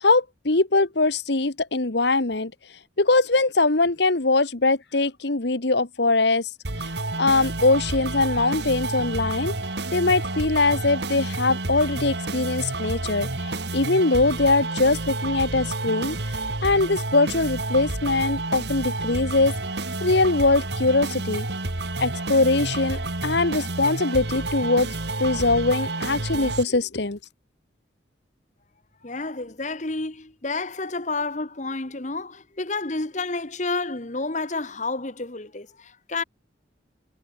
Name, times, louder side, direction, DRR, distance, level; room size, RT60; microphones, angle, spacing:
voice 1, 0.0-2.5 3.0-6.5 7.2-9.5 9.9-16.2 16.6-19.5 20.0-21.5 22.0-24.9 25.2-27.2, left 3 dB, 60° left, 1.3 m, -22 dB
sound 1, 6.6-26.6, right 2 dB, 55° right, 2.3 m, -30 dB
voice 2, 29.0-36.2, left 3 dB, 40° left, 1.4 m, -30 dB
head